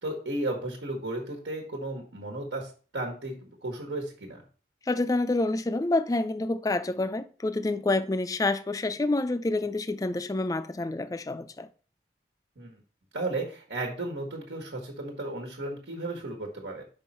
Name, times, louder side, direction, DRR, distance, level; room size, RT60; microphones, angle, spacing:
voice 1, 0.0-4.4 12.6-12.8 13.1-16.8, right 2 dB, 90° right, 1.4 m, -34 dB
voice 2, 4.9-11.7, left 2 dB, 20° left, 0.4 m, -28 dB
5.4 x 5.4 x 4.2 m
head